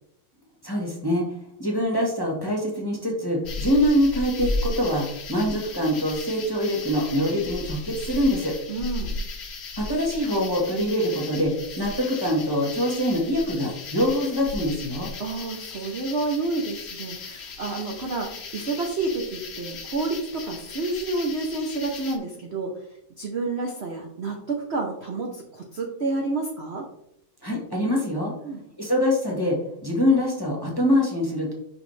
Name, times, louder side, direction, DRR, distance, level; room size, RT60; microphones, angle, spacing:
voice 1, 0.6-8.5 9.8-15.1 27.4-28.3 28.8-31.5, left 1 dB, 15° left, -2 dB, 1.1 m, -24 dB
sound 1, 3.4-22.2, left 3 dB, 55° left, 0.7 m, -36 dB
voice 2, 8.7-9.3 15.2-22.9 23.2-26.9 28.4-28.6, right 3 dB, 60° right, 0 dB, 0.7 m, -29 dB
6.2 x 5.6 x 3.2 m, 0.76 s
omnidirectional pair, 2.2 m